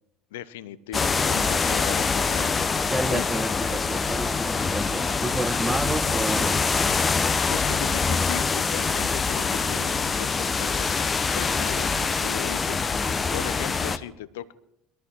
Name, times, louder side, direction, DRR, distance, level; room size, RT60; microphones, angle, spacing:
voice 1, 0.3-3.3 7.5-14.5, left 12 dB, 65° left, 0.6 m, -38 dB
sound 1, 0.9-14.0, left 4 dB, 25° left, 0.7 m, -24 dB
voice 2, 2.9-6.6, right 2 dB, 10° right, 0.4 m, -30 dB
22.0 x 13.5 x 3.2 m
figure-of-eight pair, 65°, 0 cm